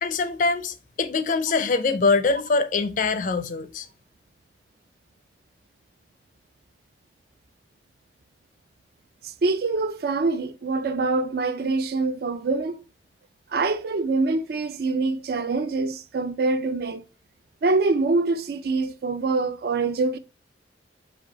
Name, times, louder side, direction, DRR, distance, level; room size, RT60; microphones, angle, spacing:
voice 1, 0.0-3.9, left 4 dB, 45° left, 0.4 m, -23 dB
voice 2, 9.2-12.8 13.5-17.0 17.6-20.2, right 3 dB, 55° right, 0.4 m, -25 dB
5.1 x 2.3 x 3.9 m
head